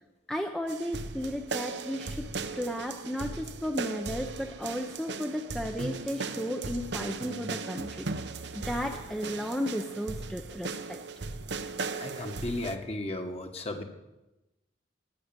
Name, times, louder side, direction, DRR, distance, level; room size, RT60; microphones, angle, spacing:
voice 1, 0.3-2.3 2.5-8.1 8.5-11.0, equal, 5° left, 3 dB, 0.7 m, -34 dB
sound 1, 0.7-12.8, right 3 dB, 70° right, 0.9 m, -37 dB
voice 2, 11.9-13.8, left 1 dB, 35° left, 4 dB, 1.6 m, -35 dB
19.0 x 6.6 x 9.0 m, 1.0 s
head